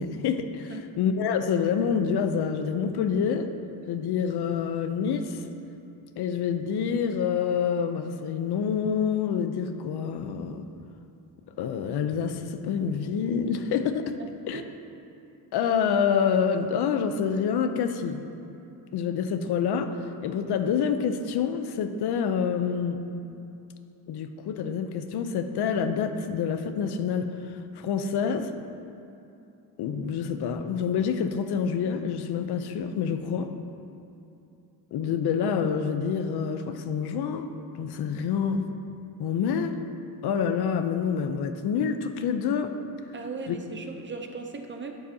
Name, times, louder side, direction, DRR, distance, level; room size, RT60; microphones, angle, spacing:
voice 1, 0.0-3.5 3.9-5.4 6.2-10.7 11.6-14.1 14.5-14.6 15.5-18.2 18.9-19.9 20.2-23.0 24.1-28.5 29.8-33.5 34.9-37.5 37.7-38.6 39.2-39.7 40.2-42.7 43.5-43.6, left 7 dB, 75° left, 8 dB, 0.6 m, -27 dB
voice 2, 14.2-14.7 43.1-44.9, right 4 dB, 30° right, 4 dB, 0.5 m, -38 dB
11.5 x 7.6 x 2.8 m, 2.7 s
cardioid pair, 145°, 39 cm